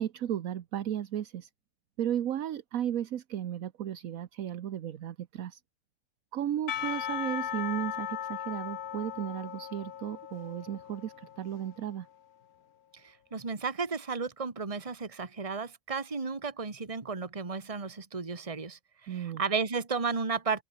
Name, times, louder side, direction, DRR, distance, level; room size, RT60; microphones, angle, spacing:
voice 1, 0.0-1.5 2.0-5.6 6.3-12.1 19.1-19.4, right 10 dB, 70° right, 1.3 m, -34 dB
Percussion / Church bell, 6.7-11.9, left 9 dB, 80° left, 1.5 m, -38 dB
voice 2, 13.0-20.6, right 5 dB, 25° right, 1.7 m, -33 dB
omnidirectional pair, 1.5 m